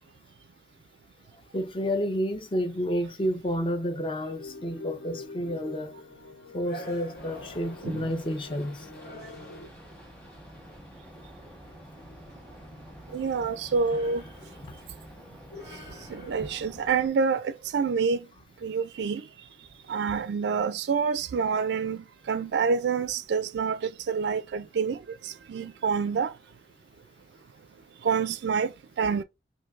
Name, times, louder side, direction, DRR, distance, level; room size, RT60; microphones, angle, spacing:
voice 1, 1.5-5.9 6.5-8.8 14.6-14.7, equal, 30° left, 0.5 m, -30 dB
sound 1, 4.4-9.7, left 3 dB, 75° left, 0.7 m, -45 dB
sound 2, 6.6-8.1 8.9-10.0 13.9-14.9 15.5-16.7, right 1 dB, 50° left, 1.1 m, -46 dB
sound 3, 7.1-17.1, equal, 5° left, 1.0 m, -48 dB
voice 2, 13.1-14.2 16.1-18.2 18.6-19.2 19.9-25.0 25.2-26.3 28.0-28.7 29.0-29.2, right 5 dB, 75° right, 0.3 m, -27 dB
4.5 x 2.7 x 2.3 m
head